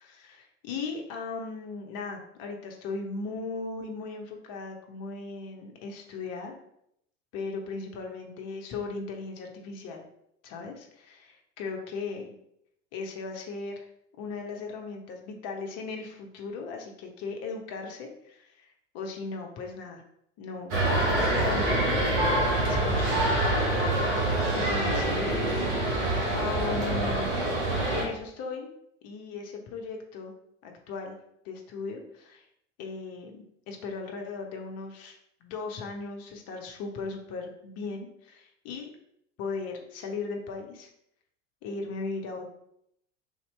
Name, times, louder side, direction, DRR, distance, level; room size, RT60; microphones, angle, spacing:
voice 1, 0.0-6.5 7.3-10.0 10.4-12.3 12.9-13.9 14.2-18.7 18.9-20.0 20.4-23.3 24.5-27.6 27.9-28.7 29.0-30.3 30.6-31.2 31.4-32.5 32.8-38.9 39.4-40.9 41.6-42.4, left 4 dB, 40° left, 2 dB, 0.8 m, -37 dB
sound 1, 20.7-28.0, right 1 dB, 60° right, 1.3 m, -26 dB
3.5 x 2.8 x 3.1 m, 0.76 s
figure-of-eight pair, 75°, 38 cm